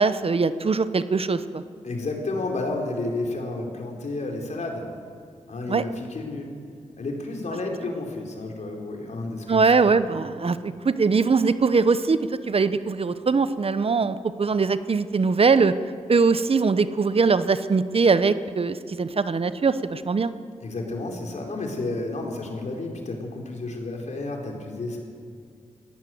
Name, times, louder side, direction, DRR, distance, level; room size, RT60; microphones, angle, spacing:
voice 1, 0.0-1.6 5.7-5.8 9.5-12.2 12.5-15.7 16.1-20.3, right 4 dB, 50° right, 13 dB, 0.9 m, -21 dB
voice 2, 1.8-4.9 5.5-6.5 7.0-10.0 20.6-25.0, left 2 dB, 65° left, 1 dB, 4.2 m, -31 dB
21.0 x 16.0 x 7.8 m, 2.2 s
cardioid pair, 60°, 13 cm